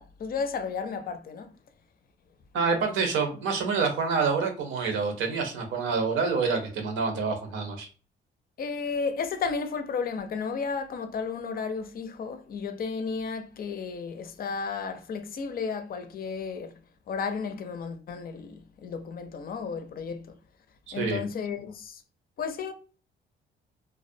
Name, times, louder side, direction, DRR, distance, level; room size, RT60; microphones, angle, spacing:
voice 1, 0.0-1.5 8.6-16.7 17.1-20.4 20.9-22.0 22.4-22.7, left 5 dB, 50° left, 0.4 m, -33 dB
voice 2, 2.5-7.9 20.9-21.2, right 5 dB, 85° right, 0.7 m, -27 dB
2.3 x 2.1 x 2.5 m
cardioid pair, 90°, 20 cm